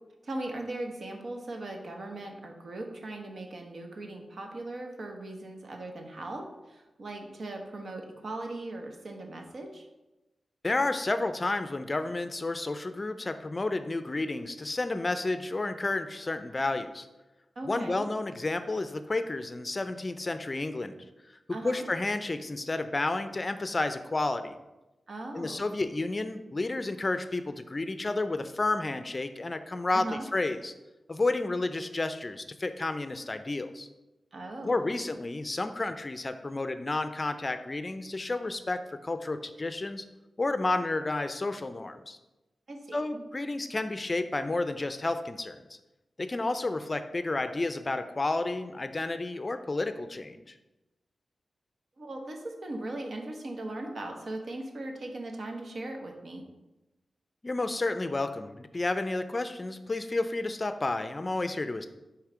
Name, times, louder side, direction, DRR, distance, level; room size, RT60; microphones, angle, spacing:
voice 1, 0.2-9.9 17.6-18.1 21.5-21.8 25.1-25.8 29.9-30.3 34.3-34.9 42.7-43.2 52.0-56.4, right 2 dB, 65° right, 3 dB, 1.0 m, -39 dB
voice 2, 10.6-17.1 17.6-21.0 21.5-24.6 25.3-30.7 31.1-33.9 34.6-40.1 40.4-42.2 42.9-45.8 46.2-50.5 57.4-61.9, left 2 dB, 35° left, 10 dB, 0.4 m, -31 dB
6.4 x 3.2 x 4.9 m, 1.0 s
cardioid pair, 65°, 0 cm